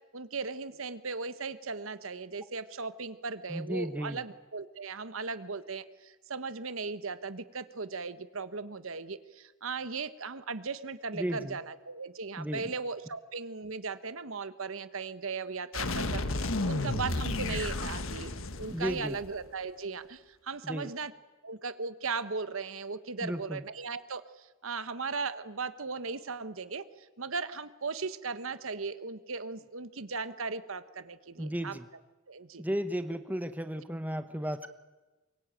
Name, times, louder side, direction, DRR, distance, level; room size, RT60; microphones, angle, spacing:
voice 1, 0.1-21.1 21.4-31.8 32.3-32.6, right 4 dB, 75° right, 13 dB, 1.2 m, -37 dB
voice 2, 3.5-4.2 11.1-11.6 12.4-12.6 18.7-19.2 20.6-20.9 23.2-23.6 31.4-31.9 32.6-34.7, equal, 10° right, 10 dB, 0.9 m, -34 dB
sound 1, 15.7-19.4, left 2 dB, 70° left, 1.5 m, -32 dB
23.5 x 22.5 x 9.0 m, 1.2 s
head